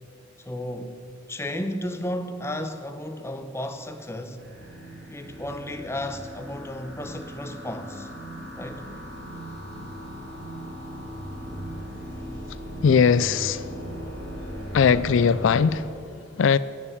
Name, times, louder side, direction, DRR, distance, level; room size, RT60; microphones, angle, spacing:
voice 1, 0.4-1.0 1.3-4.4 5.1-8.1 8.6-8.9, left 1 dB, 15° left, 0.8 m, -33 dB
sound 1, 4.4-15.8, equal, 65° right, 3.4 m, -38 dB
voice 2, 12.8-13.9 14.7-16.6, left 6 dB, 85° left, 0.4 m, -21 dB
17.0 x 7.2 x 8.7 m
head